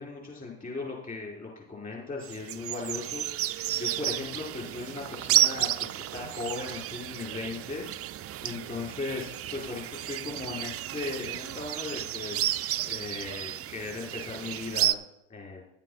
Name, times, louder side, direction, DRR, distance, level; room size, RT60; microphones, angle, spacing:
voice 1, 0.0-12.5 12.9-15.0 15.3-15.6, left 3 dB, 25° left, -2 dB, 4.8 m, -38 dB
sound 1, 2.2-14.9, right 13 dB, 45° right, 0.5 m, -31 dB
11.0 x 7.5 x 5.7 m, 0.79 s
supercardioid pair, 80°, 33 cm